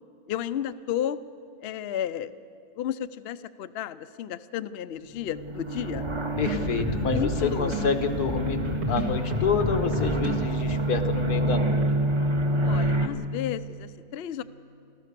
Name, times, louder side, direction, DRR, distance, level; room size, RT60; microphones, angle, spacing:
voice 1, 0.3-1.2 1.6-2.3 2.8-6.0 6.9-7.7 12.6-14.4, left 10 dB, 60° left, 12 dB, 0.6 m, -32 dB
sound 1, 5.3-13.1, right 1 dB, 25° right, 0.9 m, -27 dB
sound 2, 6.3-12.0, equal, 80° right, 2.9 m, -33 dB
voice 2, 6.4-8.6 8.9-11.8, left 5 dB, 90° left, 7 dB, 1.7 m, -28 dB
26.0 x 15.0 x 6.7 m, 2.5 s
omnidirectional pair, 1.6 m